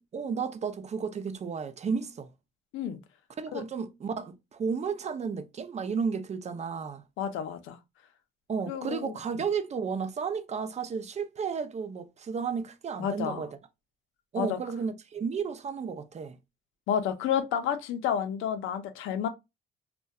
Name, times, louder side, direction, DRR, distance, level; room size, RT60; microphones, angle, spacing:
voice 1, 0.0-2.3 3.4-7.0 8.5-13.6 14.3-16.4, right 6 dB, 35° right, 0.4 m, -33 dB
voice 2, 7.2-7.8 8.7-9.4 13.0-13.4 14.4-14.6 16.9-19.3, left 8 dB, 85° left, 0.5 m, -30 dB
2.6 x 2.1 x 2.2 m
cardioid pair, 90°, 20 cm